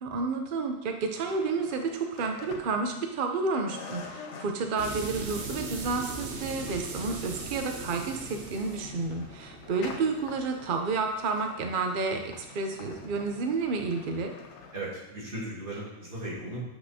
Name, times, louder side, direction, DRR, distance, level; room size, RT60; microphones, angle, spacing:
voice 1, 0.0-14.3, right 4 dB, 75° right, 4 dB, 0.4 m, -30 dB
sound 1, 1.2-3.3 3.7-14.8, left 5 dB, 60° left, 0.8 m, -47 dB
sound 2, 4.8-11.3, right 3 dB, 55° right, 1.0 m, -40 dB
voice 2, 14.7-16.6, right 1 dB, 35° right, -6 dB, 1.9 m, -37 dB
7.9 x 5.9 x 2.7 m, 0.90 s
omnidirectional pair, 1.7 m